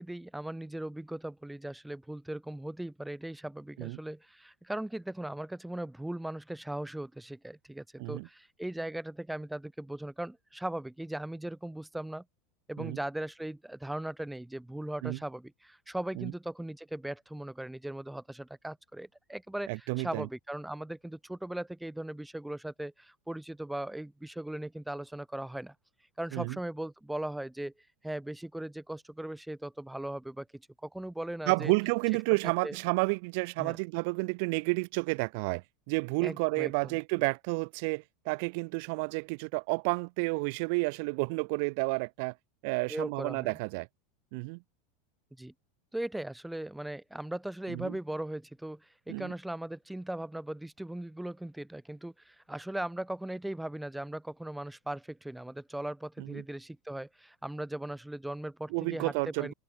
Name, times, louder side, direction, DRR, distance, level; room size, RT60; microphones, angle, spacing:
voice 1, 0.0-12.2 12.7-25.7 26.2-27.7 28.0-31.7 32.6-32.8 33.6-33.8 36.2-37.0 42.9-43.5 45.4-45.5 45.9-59.5, right 1 dB, 5° right, 1.2 m, -38 dB
voice 2, 19.7-20.3 26.3-26.6 31.5-42.3 42.6-43.9 44.3-44.6 47.7-47.9 49.1-49.3 56.2-56.4 58.7-59.5, right 33 dB, 65° right, 0.7 m, -31 dB
supercardioid pair, 125°, 0 cm